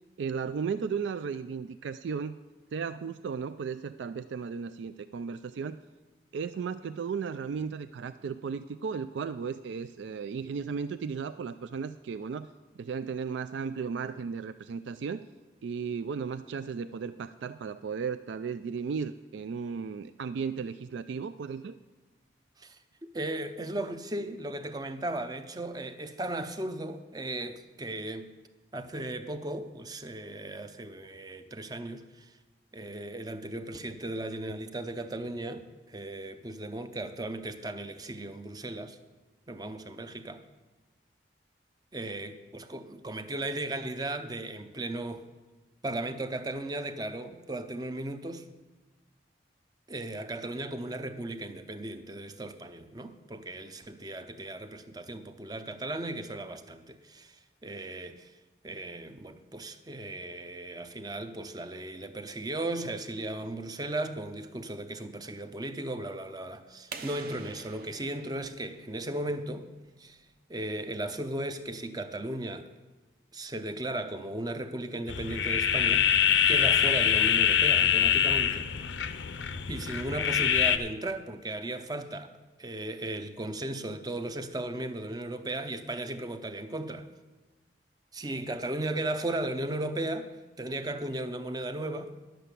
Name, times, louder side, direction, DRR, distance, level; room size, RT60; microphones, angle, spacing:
voice 1, 0.2-2.4 2.7-5.8 6.3-12.5 12.8-15.2 15.6-21.7, right 6 dB, 75° right, 0.3 m, -35 dB
voice 2, 23.1-28.3 28.7-32.3 32.7-39.0 39.5-40.4 41.9-45.3 45.8-48.5 49.9-58.3 58.6-69.7 70.0-70.2 70.5-72.7 73.3-76.1 76.5-78.7 79.7-82.3 82.6-87.1 88.1-92.1, right 1 dB, 20° right, 0.5 m, -36 dB
sound 1, 66.9-69.6, right 4 dB, 55° right, 0.8 m, -46 dB
sound 2, 75.1-80.8, left 9 dB, 80° left, 0.6 m, -24 dB
11.0 x 7.7 x 6.8 m
head